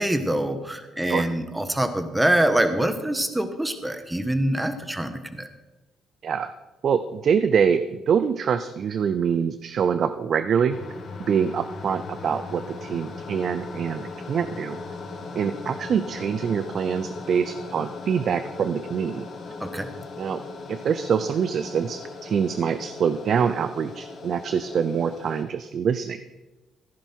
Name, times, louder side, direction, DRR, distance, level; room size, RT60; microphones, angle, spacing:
voice 1, 0.0-5.5 19.6-19.9, right 1 dB, 10° right, 9 dB, 1.3 m, -25 dB
voice 2, 6.8-10.8 11.2-14.8 15.4-19.3 20.2-20.4 20.7-26.2, right 7 dB, 60° right, 12 dB, 0.5 m, -25 dB
sound 1, 10.7-25.4, left 3 dB, 60° left, 2.6 m, -38 dB
14.5 x 10.5 x 4.5 m, 1.1 s
cardioid pair, 90°, 0 cm